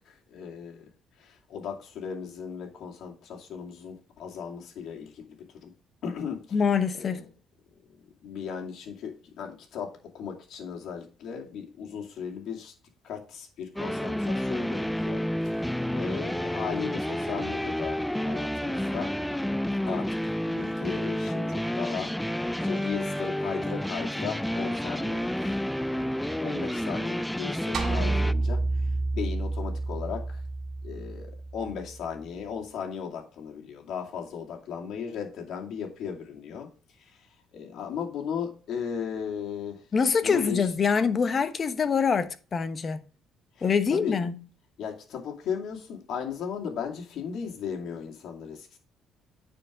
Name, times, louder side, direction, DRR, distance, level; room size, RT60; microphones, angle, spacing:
voice 1, 0.1-0.9 1.2-5.2 5.5-5.7 6.0-6.6 6.9-7.2 8.2-12.7 13.0-19.1 19.9-20.1 20.4-22.1 22.6-25.6 25.9-28.6 29.1-30.4 30.8-36.7 37.0-37.2 37.5-39.8 40.2-40.7 43.6-43.7 43.9-44.1 44.8-48.8, left 7 dB, 70° left, 2.4 m, -36 dB
voice 2, 6.5-7.2 39.9-43.0 43.6-44.4, left 6 dB, 40° left, 1.0 m, -25 dB
sound 1, 13.8-28.3, left 1 dB, 5° left, 0.4 m, -30 dB
sound 2, 27.7-32.2, right 2 dB, 55° right, 1.8 m, -29 dB
9.1 x 4.6 x 5.0 m
cardioid pair, 90°, 0 cm